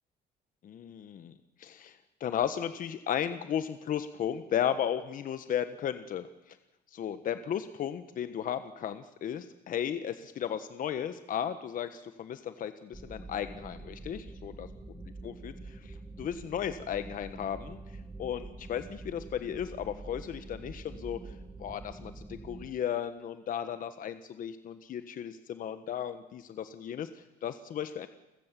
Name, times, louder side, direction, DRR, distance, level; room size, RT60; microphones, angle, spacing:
voice 1, 0.6-6.6 6.9-14.7 15.2-17.8 18.2-21.3 21.6-28.1, left 9 dB, 55° left, 10 dB, 1.3 m, -35 dB
sound 1, 12.9-22.7, right 2 dB, 15° right, 2.3 m, -46 dB
29.5 x 15.5 x 7.6 m, 1.0 s
cardioid pair, 110°, 17 cm